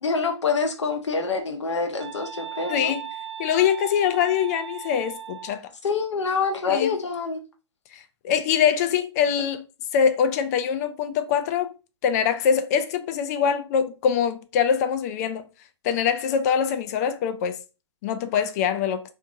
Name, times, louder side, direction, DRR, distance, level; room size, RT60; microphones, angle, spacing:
voice 1, 0.0-2.9 5.8-7.4, left 4 dB, 70° left, 0.7 m, -26 dB
sound 1, 2.0-5.6, right 9 dB, 65° right, 0.9 m, -38 dB
voice 2, 2.7-3.0 3.4-5.6 6.7-6.9 7.9-9.6 9.9-11.7 12.0-15.5 15.8-17.6 18.0-19.0, left 8 dB, 35° left, 0.4 m, -23 dB
2.6 x 2.5 x 2.6 m
figure-of-eight pair, 115°, 15 cm